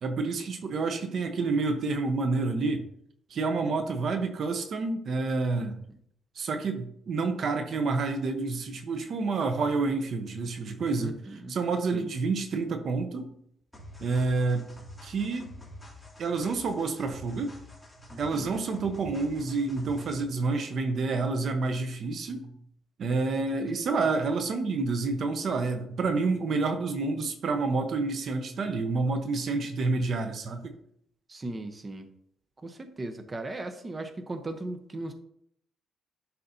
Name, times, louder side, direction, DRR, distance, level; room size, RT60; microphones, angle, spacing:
voice 1, 0.0-2.8 3.3-5.8 6.4-11.1 11.5-13.3 14.0-14.7 15.0-15.5 16.2-17.6 18.2-22.5 23.0-30.7, right 3 dB, 60° right, 7 dB, 0.8 m, -29 dB
voice 2, 11.0-11.6 11.9-12.1 18.1-18.5 31.3-32.1 32.6-35.1, right 2 dB, 25° right, 7 dB, 0.8 m, -37 dB
sound 1, 13.7-20.3, left 1 dB, 5° left, 2.5 m, -48 dB
11.0 x 4.1 x 2.7 m, 0.69 s
cardioid pair, 90°, 0 cm